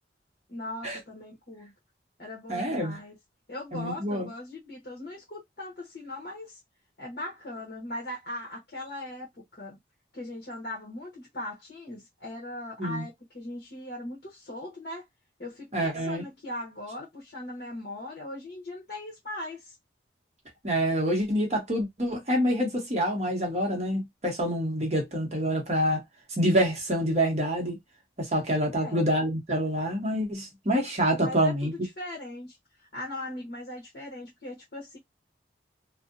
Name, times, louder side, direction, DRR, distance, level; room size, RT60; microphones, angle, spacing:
voice 1, 0.5-1.7 2.2-3.2 3.5-6.6 7.0-9.8 10.1-15.0 15.4-19.7 24.9-25.0 28.7-29.1 31.2-35.0, left 1 dB, 55° left, 0.9 m, -39 dB
voice 2, 2.5-3.0 3.7-4.3 12.8-13.0 15.7-16.2 20.6-26.0 26.4-27.8 28.2-31.7, equal, 35° right, 0.8 m, -26 dB
2.6 x 2.0 x 2.4 m
head